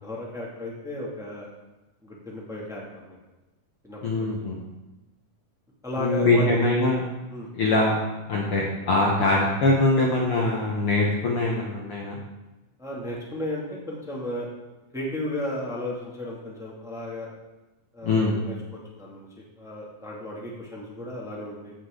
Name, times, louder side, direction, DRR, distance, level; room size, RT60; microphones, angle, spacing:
voice 1, 0.0-1.5 2.0-3.2 3.8-4.5 5.8-6.6 7.3-7.5 12.8-14.5 14.9-17.3 17.9-21.7, left 1 dB, ahead, -4 dB, 1.2 m, -34 dB
voice 2, 4.0-4.6 6.0-7.0 7.5-8.0 8.3-12.2 18.0-18.4, left 2 dB, 75° left, -3 dB, 1.2 m, -23 dB
16.0 x 7.1 x 3.9 m, 1.1 s
omnidirectional pair, 4.5 m